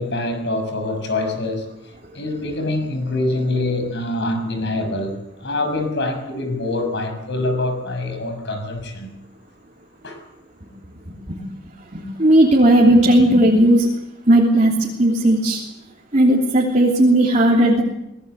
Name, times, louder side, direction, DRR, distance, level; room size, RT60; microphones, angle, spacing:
voice 1, 0.0-1.7 2.1-9.1 10.0-10.2, left 2 dB, 60° left, 6 dB, 6.4 m, -25 dB
voice 2, 11.9-13.9 14.3-15.6 16.1-17.8, right 1 dB, 35° right, -3 dB, 3.2 m, -15 dB
25.0 x 19.5 x 8.1 m, 0.84 s
head